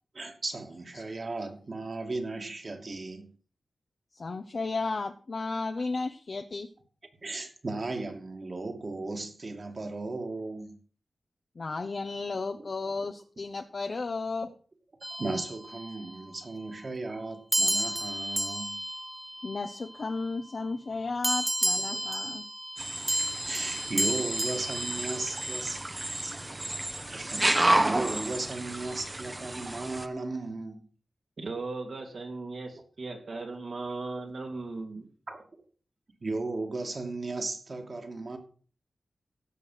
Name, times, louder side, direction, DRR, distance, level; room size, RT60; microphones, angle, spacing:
voice 1, 0.1-3.3 7.2-10.8 12.6-12.7 15.1-18.8 21.9-22.2 23.4-25.8 26.2-26.4 27.1-30.9 33.3-33.4 35.3-35.4 36.2-38.4, right 3 dB, 50° right, 2.6 m, -36 dB
voice 2, 4.1-6.7 11.6-14.5 19.4-22.4, left 3 dB, 60° left, 0.9 m, -34 dB
sound 1, 15.0-16.2 17.5-20.2 21.2-25.8, right 1 dB, 10° right, 0.5 m, -32 dB
sound 2, 22.8-30.0, right 1 dB, 25° right, 1.0 m, -31 dB
voice 3, 31.4-35.1, right 3 dB, 70° right, 2.7 m, -37 dB
16.0 x 6.3 x 5.8 m
cardioid pair, 55°, 0 cm